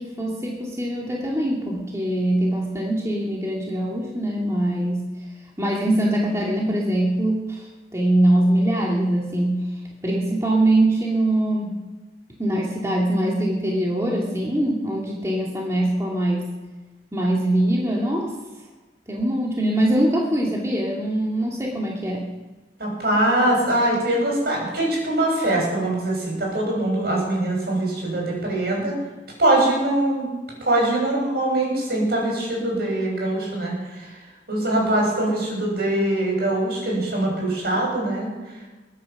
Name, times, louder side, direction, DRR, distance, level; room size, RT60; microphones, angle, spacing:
voice 1, 0.0-5.1 5.6-7.7 7.9-9.6 10.0-11.7 12.4-16.5 17.1-18.3 19.1-22.3, right 1 dB, 15° right, -3 dB, 2.4 m, -22 dB
voice 2, 22.8-28.9 29.4-30.3 30.6-34.1 34.5-38.3, right 1 dB, 60° right, -1 dB, 6.9 m, -22 dB
22.0 x 10.5 x 6.0 m, 1.2 s
head